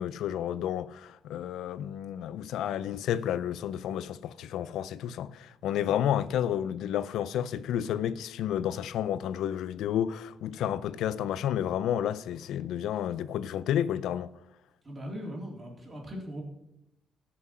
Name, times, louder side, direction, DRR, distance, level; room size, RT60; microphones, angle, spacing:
voice 1, 0.0-14.3, left 10 dB, 80° left, 0.5 m, -31 dB
voice 2, 14.8-16.4, equal, 30° right, 3.8 m, -39 dB
15.5 x 5.9 x 6.2 m
cardioid pair, 90°, 0 cm